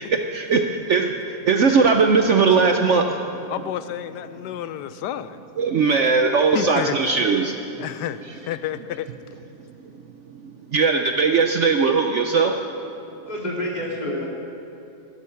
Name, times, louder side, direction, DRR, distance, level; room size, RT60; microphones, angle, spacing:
voice 1, 0.0-3.4 5.6-7.6 10.4-12.6, right 4 dB, 60° right, 4 dB, 0.9 m, -19 dB
voice 2, 3.5-5.4 6.5-7.1 7.8-9.1, left 12 dB, 90° left, 13 dB, 1.2 m, -30 dB
voice 3, 13.2-14.3, left 1 dB, 25° left, -3 dB, 2.6 m, -28 dB
16.0 x 12.0 x 5.8 m, 2.9 s
omnidirectional pair, 1.7 m